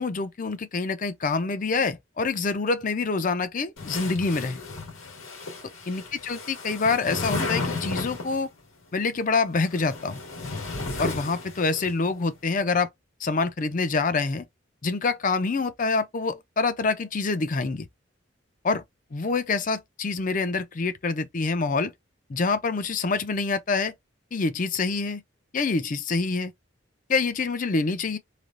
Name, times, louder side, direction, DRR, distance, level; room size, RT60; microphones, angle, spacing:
voice 1, 0.0-4.6 5.9-8.5 8.9-10.2 11.0-12.9 13.2-14.4 14.8-17.9 18.6-18.8 19.1-21.9 22.3-23.9 24.3-25.2 25.5-26.5 27.1-28.2, left 4 dB, 40° left, 0.5 m, -26 dB
sound 1, 3.8-8.4 9.4-11.9, left 3 dB, 90° left, 1.6 m, -33 dB
3.3 x 2.4 x 2.4 m
head